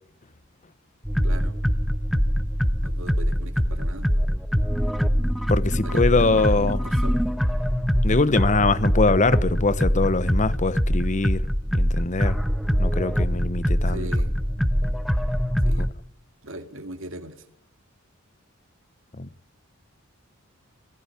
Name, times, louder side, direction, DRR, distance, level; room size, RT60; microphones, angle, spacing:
sound 1, 1.1-15.9, equal, ahead, 1.1 m, -23 dB
voice 1, 1.2-1.6 2.5-4.1 5.8-7.3 13.9-14.3 15.6-15.9 16.4-17.4, right 1 dB, 60° right, 2.4 m, -39 dB
voice 2, 5.5-6.8 8.0-11.5 11.7-12.4 12.8-14.1 19.2-19.3, left 3 dB, 35° left, 0.9 m, -23 dB
19.5 x 15.5 x 9.9 m
head